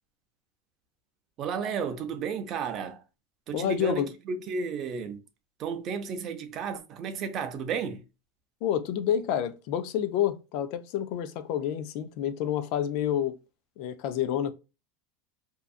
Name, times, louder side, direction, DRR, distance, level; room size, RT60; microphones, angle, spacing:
voice 1, 1.4-3.0 3.5-5.2 5.6-8.0, right 6 dB, 35° right, 0.5 m, -33 dB
voice 2, 3.5-4.1 8.6-13.3 13.8-14.5, left 10 dB, 50° left, 0.4 m, -28 dB
2.6 x 2.3 x 2.3 m
supercardioid pair, 150°, 0 cm